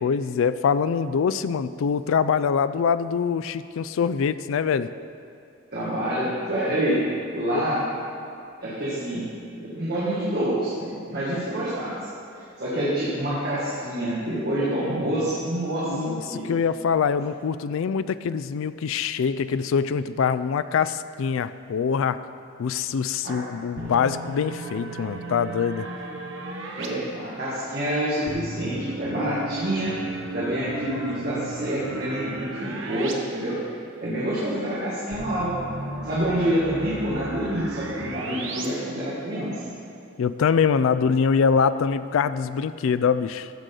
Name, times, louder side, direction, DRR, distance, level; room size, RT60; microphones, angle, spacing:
voice 1, 0.0-4.9 7.5-7.7 15.8-22.2 22.6-25.9 40.2-43.5, left 6 dB, 75° left, 13 dB, 0.3 m, -24 dB
voice 2, 5.7-7.0 7.3-7.8 8.6-9.3 9.6-12.0 12.4-16.5 23.2-23.4 26.8-29.9 30.3-33.5 34.0-35.6 36.0-39.7, right 1 dB, 50° right, -9 dB, 1.8 m, -27 dB
sound 1, 23.8-26.9 28.3-33.1 33.4-33.5 35.1-38.7, right 2 dB, 70° right, 1.0 m, -34 dB
14.0 x 6.4 x 3.9 m, 2.5 s
head